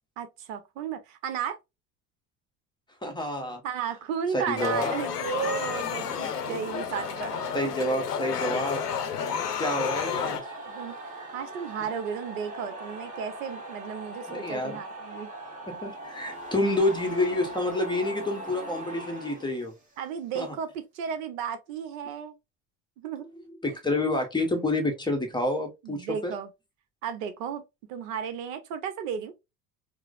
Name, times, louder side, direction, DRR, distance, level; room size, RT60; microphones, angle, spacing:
voice 1, 0.2-1.6 3.6-7.5 10.6-11.0 11.3-15.3 16.8-16.9 20.0-22.3 23.0-23.3 25.8-26.5 27.0-27.6 27.9-29.3, right 7 dB, 55° right, 0.7 m, -34 dB
voice 2, 3.0-3.6 4.3-4.9 6.1-6.2 7.5-8.8 9.6-10.4 14.3-14.8 15.7-19.7 20.3-20.6 23.6-26.3, left 1 dB, 10° left, 0.8 m, -28 dB
sound 1, 4.6-10.4, left 8 dB, 80° left, 0.6 m, -31 dB
sound 2, 5.9-20.1, right 1 dB, 15° right, 1.1 m, -41 dB
4.7 x 2.0 x 2.3 m
figure-of-eight pair, 70°, 47 cm